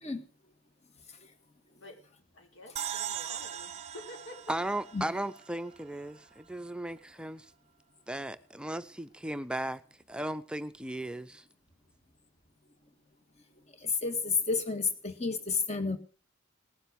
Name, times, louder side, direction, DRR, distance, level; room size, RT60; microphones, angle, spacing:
voice 1, 2.3-4.6, left 1 dB, 80° left, 4.9 m, -48 dB
sound 1, 2.8-6.1, right 9 dB, 30° right, 0.9 m, -40 dB
voice 2, 4.5-7.5 8.1-9.8 10.1-11.4, right 1 dB, 5° right, 0.6 m, -36 dB
voice 3, 13.8-16.0, left 4 dB, 35° left, 1.8 m, -30 dB
19.0 x 7.9 x 6.5 m
head